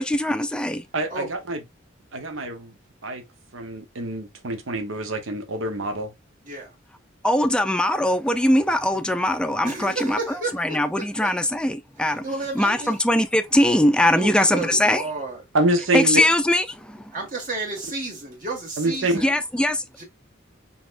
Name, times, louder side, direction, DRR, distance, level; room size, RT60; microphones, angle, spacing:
voice 1, 0.0-0.8 7.2-10.2 10.6-12.2 12.5-15.0 15.9-17.1 19.1-20.0, left 1 dB, 5° left, 0.4 m, -21 dB
voice 2, 0.9-1.6 2.1-2.7 3.0-3.2 3.5-6.1 15.5-16.2 18.8-19.2, right 1 dB, 80° right, 0.9 m, -25 dB
voice 3, 9.6-11.3 12.2-13.0 14.1-15.4 17.1-19.4 20.0-20.1, right 2 dB, 45° right, 1.7 m, -32 dB
4.1 x 3.6 x 2.5 m
head